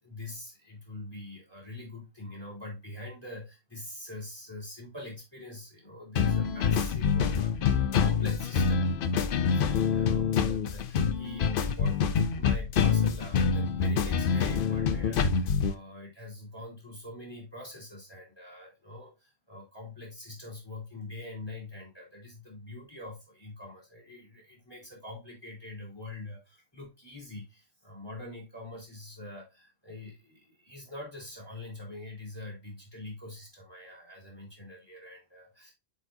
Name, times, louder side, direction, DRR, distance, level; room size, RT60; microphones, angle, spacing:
voice 1, 0.0-12.0 12.3-35.7, left 2 dB, 20° left, -2 dB, 2.8 m, -44 dB
sound 1, 6.2-15.7, left 6 dB, 55° left, 0.7 m, -26 dB
8.3 x 4.5 x 2.7 m, 0.24 s
omnidirectional pair, 1.3 m